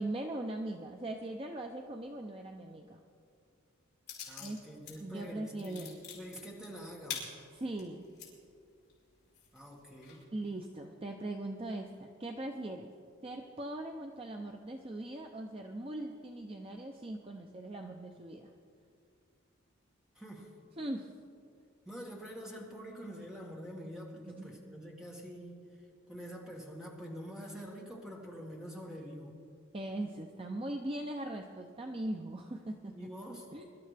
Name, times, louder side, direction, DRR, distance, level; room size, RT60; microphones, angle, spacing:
voice 1, 0.0-3.0 4.4-4.6 5.0-6.0 7.5-8.1 10.3-12.9 13.2-18.5 20.8-21.1 24.3-24.6 29.7-33.1 33.5-33.6, right 1 dB, 25° right, 3 dB, 0.5 m, -40 dB
sound 1, 4.1-5.0 5.3-8.3 8.8-8.9 9.3-10.2, left 7 dB, 50° left, 4.3 m, -44 dB
voice 2, 4.2-7.3 9.5-10.3 20.2-20.5 21.9-25.7 26.1-29.4 32.9-33.5, equal, 5° right, -3 dB, 1.8 m, -46 dB
24.0 x 12.5 x 3.4 m, 2.4 s
head